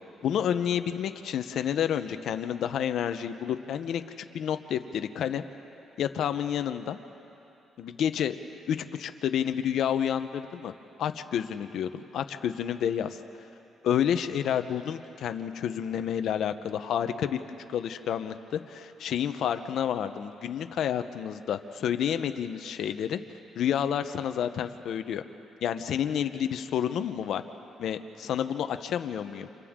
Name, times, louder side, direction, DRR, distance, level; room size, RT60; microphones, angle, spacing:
voice 1, 0.2-4.0 4.3-5.4 6.0-7.0 7.8-8.4 8.7-10.7 11.0-13.2 13.8-17.4 17.7-23.2 23.6-25.2 25.6-27.4 27.8-29.5, left 9 dB, 70° left, 9 dB, 0.9 m, -29 dB
29.5 x 27.0 x 3.8 m, 2.9 s
cardioid pair, 90°, 0 cm